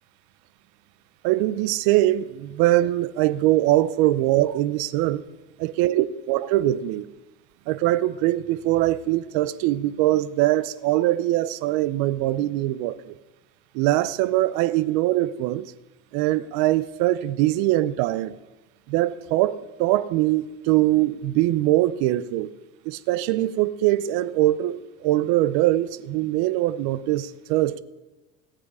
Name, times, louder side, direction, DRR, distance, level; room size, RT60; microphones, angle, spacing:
voice 1, 1.2-5.2 5.6-7.0 7.7-13.1 13.7-15.7 16.1-18.3 18.9-22.5 22.8-27.8, right 15 dB, 70° right, 0.7 m, -22 dB
17.5 x 7.8 x 4.9 m
supercardioid pair, 130°, 39 cm